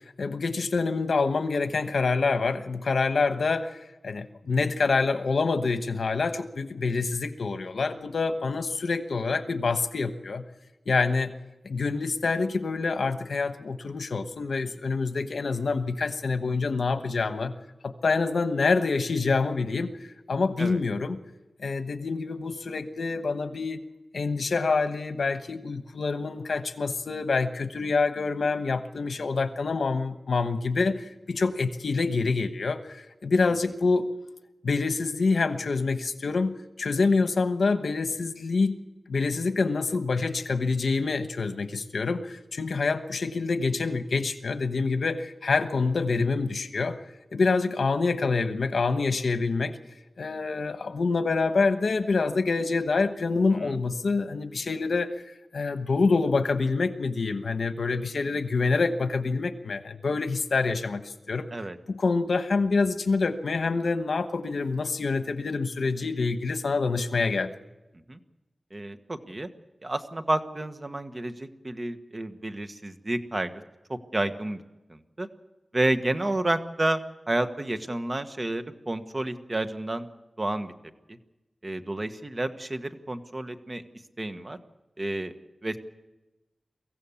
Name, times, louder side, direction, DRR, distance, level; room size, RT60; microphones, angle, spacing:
voice 1, 0.2-10.4 10.9-11.3 11.6-17.5 17.8-19.9 20.3-21.2 21.6-23.8 24.1-34.1 34.6-38.8 39.1-47.0 47.3-49.8 50.2-55.1 55.5-61.5 61.9-67.5, left 4 dB, 85° left, 9 dB, 1.2 m, -26 dB
voice 2, 68.7-69.5 69.8-73.5 73.9-74.6 74.9-75.3 75.7-77.0 77.3-80.1 80.4-80.7 81.6-83.8 84.2-84.6 85.0-85.3 85.6-85.8, right 1 dB, 35° right, 8 dB, 1.3 m, -30 dB
23.5 x 15.5 x 7.1 m, 1.0 s
wide cardioid pair, 90°, 0 cm